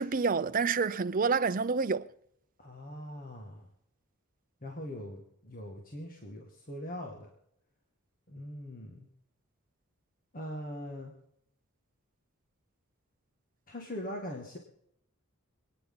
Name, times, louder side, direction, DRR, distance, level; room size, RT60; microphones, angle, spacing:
voice 1, 0.0-2.1, right 5 dB, 40° right, 0.6 m, -28 dB
voice 2, 2.6-3.7 4.6-7.3 8.3-9.1 10.3-11.1 13.7-14.6, equal, 40° left, 2.0 m, -41 dB
26.5 x 10.0 x 3.9 m
head